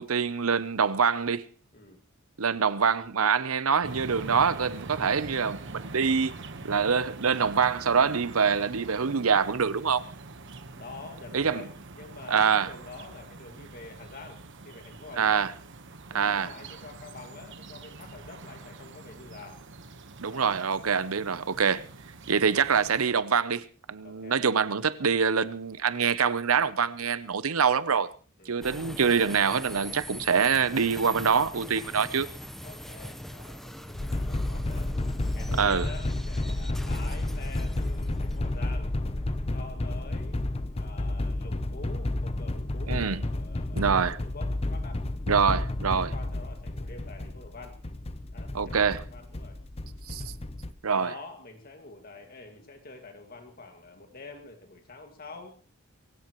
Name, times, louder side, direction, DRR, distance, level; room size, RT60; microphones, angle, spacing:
voice 1, 0.0-1.5 2.4-6.3 6.6-10.0 11.3-11.6 12.3-12.7 15.2-15.5 16.1-16.5 20.2-21.9 22.3-28.1 28.5-32.3 35.6-35.9 42.9-43.2 43.7-44.2 45.3-46.1 48.5-49.0 50.1-50.3 50.8-51.1, right 6 dB, 80° right, 0.8 m, -25 dB
sound 1, 3.8-23.0, right 3 dB, 60° right, 1.2 m, -44 dB
voice 2, 10.8-15.5 16.1-19.6 20.2-20.6 24.0-24.5 28.4-28.7 32.6-34.9 35.3-38.9 39.5-40.5 40.7-45.1 45.9-47.8 48.3-49.6 50.9-55.6, left 3 dB, 45° left, 2.1 m, -46 dB
sound 2, 28.6-42.0, equal, ahead, 0.9 m, -43 dB
sound 3, 33.9-50.7, left 1 dB, 30° left, 0.8 m, -31 dB
23.0 x 16.5 x 3.1 m
head